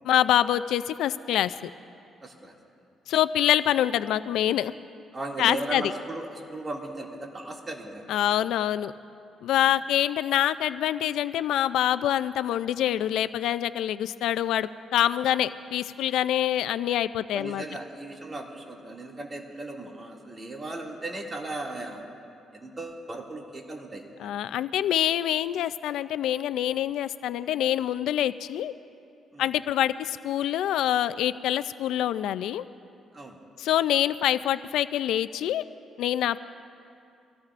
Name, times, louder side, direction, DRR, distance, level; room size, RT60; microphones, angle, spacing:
voice 1, 0.1-1.7 3.1-4.7 5.4-5.9 8.1-8.9 9.4-17.6 24.2-28.7 29.4-32.6 33.6-35.6 36.0-36.4, left 11 dB, 85° left, 13 dB, 0.3 m, -25 dB
voice 2, 2.2-2.6 5.1-8.4 17.3-22.0 22.5-24.4 29.3-29.5 33.1-33.4, right 2 dB, 30° right, -1 dB, 2.3 m, -37 dB
25.0 x 17.0 x 2.5 m, 2.6 s
cardioid pair, 90°, 0 cm